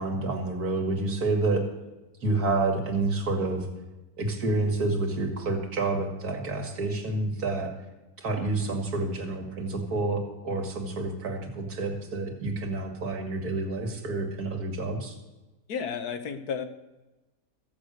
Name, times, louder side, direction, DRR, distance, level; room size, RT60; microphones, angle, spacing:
voice 1, 0.0-1.7 2.2-3.7 4.2-7.7 8.2-15.2, right 2 dB, 80° right, 4 dB, 2.4 m, -29 dB
voice 2, 15.7-16.6, left 6 dB, 90° left, 9 dB, 1.5 m, -32 dB
14.0 x 8.0 x 6.5 m, 1.1 s
omnidirectional pair, 1.6 m